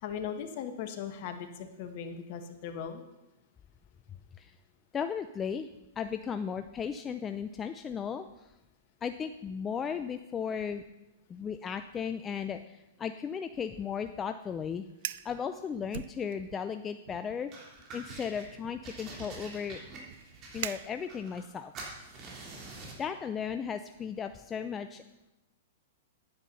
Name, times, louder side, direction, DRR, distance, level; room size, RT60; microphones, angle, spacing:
voice 1, 0.0-3.0, left 7 dB, 50° left, 7 dB, 1.4 m, -38 dB
voice 2, 4.9-5.7 6.0-8.5 9.0-10.8 11.3-14.9 15.2-17.5 17.9-19.8 20.5-22.0 23.0-25.0, left 7 dB, 20° left, 9 dB, 0.5 m, -36 dB
Fire, 14.9-15.3 15.9-16.7 17.0-17.4 18.1-21.4, right 13 dB, 60° right, 0.3 m, -43 dB
sound 1, 17.5-18.5 18.8-21.5 21.7-23.1, right 3 dB, 35° right, 3.4 m, -46 dB
9.6 x 9.4 x 5.5 m, 0.96 s
hypercardioid pair, 115°, 0 cm